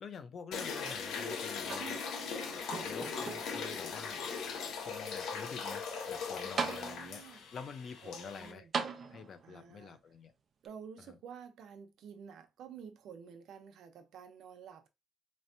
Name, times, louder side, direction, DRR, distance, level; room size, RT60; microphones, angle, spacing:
voice 1, 0.0-2.0 2.5-4.2 4.8-7.2 7.5-8.7 9.1-10.3 11.0-11.2, left 6 dB, 55° left, 0.8 m, -48 dB
sound 1, 0.5-8.5, left 5 dB, 85° left, 1.0 m, -39 dB
sound 2, 1.6-2.3 2.7-3.7 4.4-4.5 6.1-6.2 6.6-7.3 8.7-9.6 10.6-10.7, right 5 dB, 50° right, 0.7 m, -39 dB
voice 2, 1.8-2.6 6.4-7.4 8.0-8.7 9.4-10.0 10.6-14.9, right 7 dB, 85° right, 0.8 m, -51 dB
4.3 x 3.2 x 2.7 m
cardioid pair, 105°, 0 cm